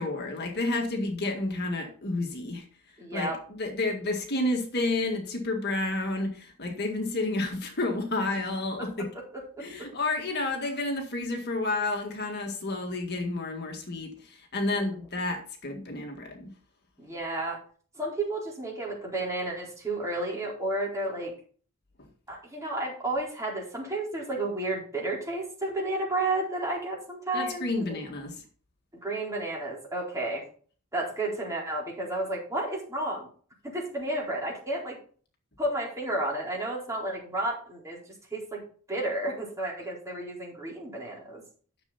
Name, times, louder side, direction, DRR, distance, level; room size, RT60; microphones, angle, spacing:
voice 1, 0.0-2.7 3.1-9.1 9.6-16.5 27.3-28.4, left 2 dB, 50° left, 3 dB, 1.9 m, -30 dB
voice 2, 3.0-3.4 9.6-9.9 14.7-14.9 17.0-17.6 18.0-21.3 22.3-28.0 29.0-30.4 30.9-33.3 33.6-35.0 35.6-38.0 38.3-38.6 38.9-41.4, right 2 dB, 15° right, -3 dB, 4.3 m, -32 dB
11.5 x 6.9 x 4.1 m, 0.43 s
head